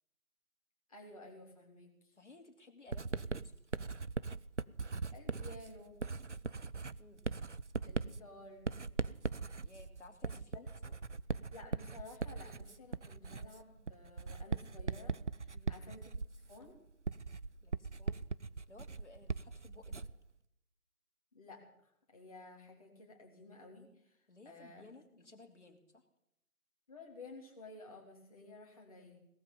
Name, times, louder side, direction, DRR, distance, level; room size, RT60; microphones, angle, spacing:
voice 1, 0.9-2.1 5.1-6.0 7.8-8.7 11.5-16.8 21.3-24.2 24.4-24.8 25.1-25.2 26.9-29.2, left 2 dB, 25° left, 0 dB, 3.1 m, -54 dB
voice 2, 2.2-3.5 7.0-7.2 9.6-11.0 15.5-15.8 17.6-18.2 18.7-20.0 24.3-26.0, left 2 dB, 50° left, 5 dB, 3.0 m, -58 dB
Writing, 2.9-20.3, right 4 dB, 50° right, 0.5 m, -40 dB
18.0 x 13.0 x 5.3 m, 0.81 s
figure-of-eight pair, 165°, 45 cm